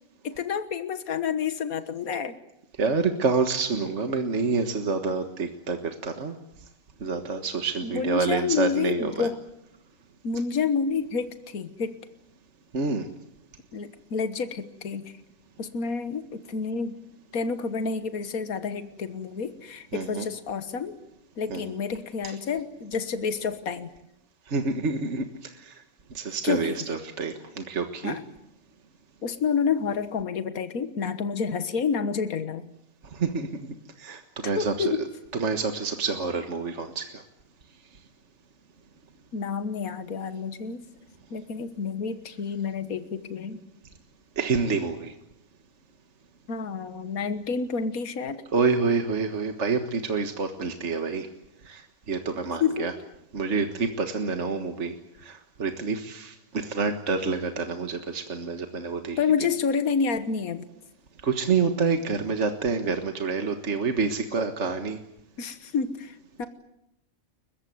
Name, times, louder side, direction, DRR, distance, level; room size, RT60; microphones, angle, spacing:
voice 1, 0.2-2.4 7.8-9.4 10.2-12.0 13.7-15.1 15.6-17.0 17.3-21.0 21.4-23.9 26.4-26.8 28.0-28.2 29.2-32.7 34.5-35.0 39.3-40.8 41.3-43.6 46.5-48.4 52.6-52.9 59.2-60.7 65.4-66.5, left 6 dB, 80° left, 10 dB, 1.8 m, -29 dB
voice 2, 2.8-6.4 7.0-9.3 12.7-13.1 19.9-20.3 21.5-21.7 22.2-22.3 24.5-25.8 26.1-28.2 33.1-33.5 34.0-35.0 35.3-37.2 44.4-45.1 48.5-51.3 51.7-52.9 53.3-55.0 55.2-59.2 61.2-65.0, right 4 dB, 55° right, 6 dB, 1.8 m, -28 dB
29.5 x 15.5 x 9.4 m, 0.84 s
omnidirectional pair, 1.5 m